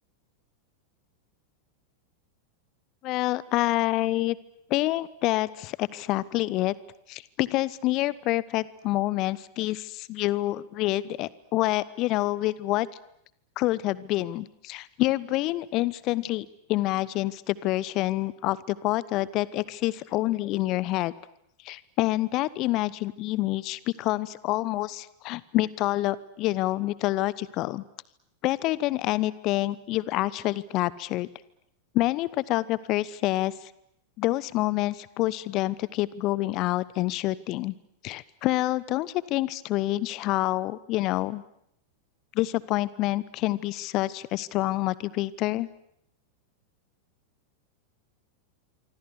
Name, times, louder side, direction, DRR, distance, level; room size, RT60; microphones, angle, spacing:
voice 1, 3.0-4.4 4.7-6.7 7.1-12.9 13.6-21.1 21.6-27.8 28.4-31.3 31.9-33.7 34.2-37.7 38.0-41.4 42.3-45.7, left 17 dB, 40° left, 21 dB, 1.0 m, -27 dB
26.5 x 25.0 x 8.3 m, 0.74 s
figure-of-eight pair, 90°, 0 cm